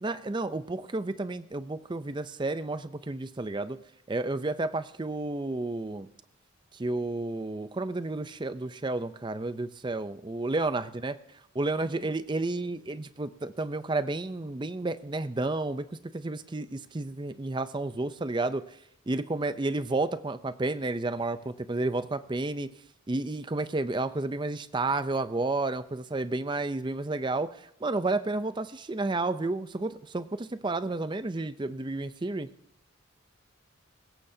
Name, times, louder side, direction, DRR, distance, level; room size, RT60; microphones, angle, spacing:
voice 1, 0.0-3.8 4.1-6.1 6.7-11.1 11.6-15.8 16.1-18.6 19.1-22.7 23.1-32.5, right 2 dB, 20° right, 12 dB, 0.5 m, -31 dB
20.5 x 16.5 x 2.7 m, 0.73 s
head